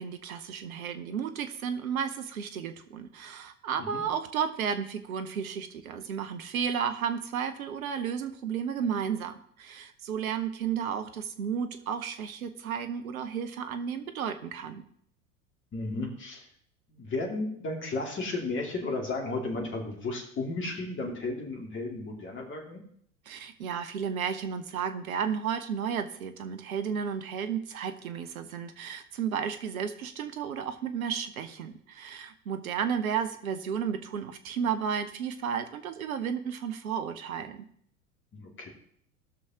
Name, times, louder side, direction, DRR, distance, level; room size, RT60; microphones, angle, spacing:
voice 1, 0.0-14.8 23.3-37.6, right 7 dB, 70° right, 9 dB, 1.1 m, -33 dB
voice 2, 15.7-16.5 16.9-22.8 38.3-38.7, left 2 dB, 25° left, 1 dB, 2.4 m, -34 dB
18.5 x 6.3 x 2.9 m, 0.66 s
figure-of-eight pair, 80°, 44 cm